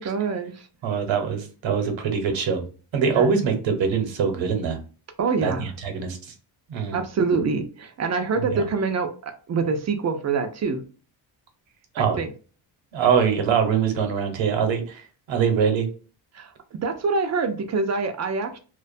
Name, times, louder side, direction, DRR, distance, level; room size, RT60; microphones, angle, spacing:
voice 1, 0.0-0.7 3.1-3.5 5.2-5.7 6.9-10.8 12.0-12.3 16.3-18.6, right 4 dB, 40° right, 0.4 m, -26 dB
voice 2, 0.8-2.6 2.9-4.8 5.4-5.5 5.8-6.2 6.7-7.0 8.5-8.6 11.9-12.2 12.9-15.0 15.3-15.9, right 6 dB, 75° right, 0.8 m, -23 dB
2.4 x 2.2 x 2.4 m
cardioid pair, 100°, 46 cm